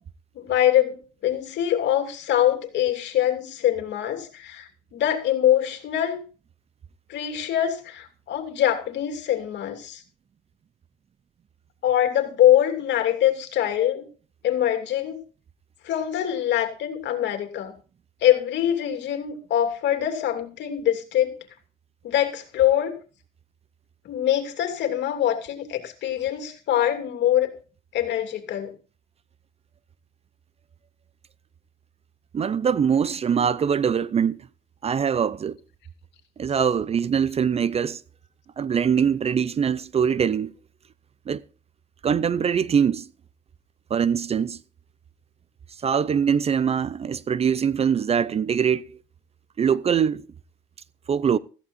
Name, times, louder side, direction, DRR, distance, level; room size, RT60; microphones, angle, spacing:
voice 1, 0.3-1.0 1.2-6.2 7.1-10.0 11.8-14.0 14.4-15.2 15.8-17.7 18.2-21.3 22.0-22.9 24.0-27.5 27.9-28.7, left 11 dB, 65° left, 2.8 m, -23 dB
voice 2, 32.3-34.4 34.8-35.6 36.4-38.0 38.6-40.5 41.3-41.4 42.0-43.1 43.9-44.6 45.8-48.8 49.6-50.2 51.1-51.4, right 7 dB, 30° right, 0.5 m, -23 dB
16.5 x 14.5 x 2.6 m
cardioid pair, 95°, 20 cm